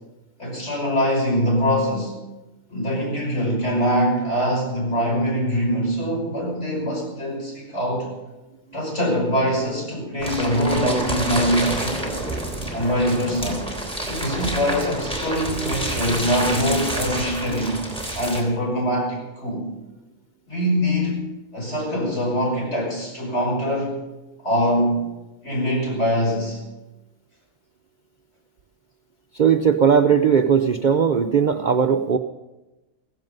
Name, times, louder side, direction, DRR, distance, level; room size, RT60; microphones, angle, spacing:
voice 1, 0.4-2.1 2.7-8.1 8.7-12.2 12.7-13.6 14.0-17.8 18.1-19.6 20.5-21.3 21.5-24.0 24.4-25.0 25.4-26.6, equal, 55° left, -2 dB, 6.0 m, -23 dB
sound 1, 10.2-18.4, right 1 dB, 5° left, 3.1 m, -28 dB
voice 2, 29.3-32.2, right 7 dB, 50° right, 5 dB, 0.6 m, -18 dB
16.0 x 15.5 x 5.4 m, 1.1 s
omnidirectional pair, 1.4 m